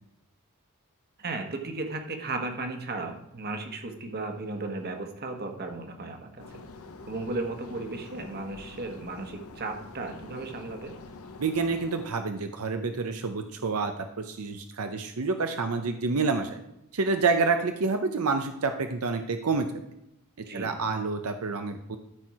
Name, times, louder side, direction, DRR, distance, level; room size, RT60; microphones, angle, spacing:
voice 1, 1.2-6.6 7.1-10.9 20.4-20.7, right 3 dB, 45° right, 5 dB, 1.3 m, -35 dB
sound 1, 6.4-12.1, left 3 dB, 80° left, 0.9 m, -46 dB
voice 2, 11.4-16.6 16.9-19.7 20.5-22.0, right 4 dB, 85° right, 6 dB, 0.7 m, -28 dB
13.0 x 4.5 x 4.8 m, 0.85 s
head